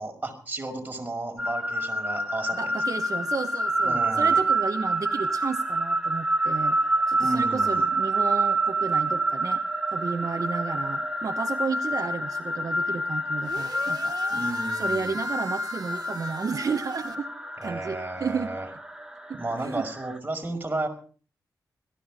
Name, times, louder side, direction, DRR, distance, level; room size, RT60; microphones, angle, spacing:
voice 1, 0.0-2.7 3.8-4.4 7.2-7.9 14.3-15.2 17.6-18.7 19.4-20.9, right 2 dB, 25° right, 2 dB, 5.3 m, -33 dB
sound 1, 1.4-20.2, right 2 dB, 10° right, 2.4 m, -27 dB
voice 2, 2.5-6.8 7.1-9.6 9.9-14.2 14.7-17.3 17.6-18.5 19.3-19.8, right 5 dB, 60° right, 7 dB, 1.1 m, -32 dB
sound 2, 13.4-17.2, right 6 dB, 75° right, 2.0 m, -41 dB
18.0 x 14.0 x 5.1 m, 0.41 s
cardioid pair, 55°, 7 cm